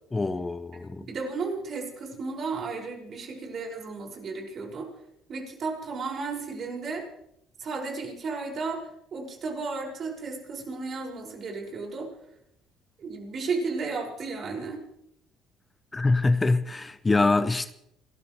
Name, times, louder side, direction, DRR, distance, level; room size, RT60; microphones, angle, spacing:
voice 1, 0.1-1.1 15.9-17.7, left 3 dB, 20° left, 0.7 m, -24 dB
voice 2, 0.9-4.9 5.3-7.0 7.6-12.1 13.0-14.8, right 4 dB, 50° right, 5.6 m, -34 dB
29.0 x 13.0 x 3.2 m
supercardioid pair, 70°, 0 cm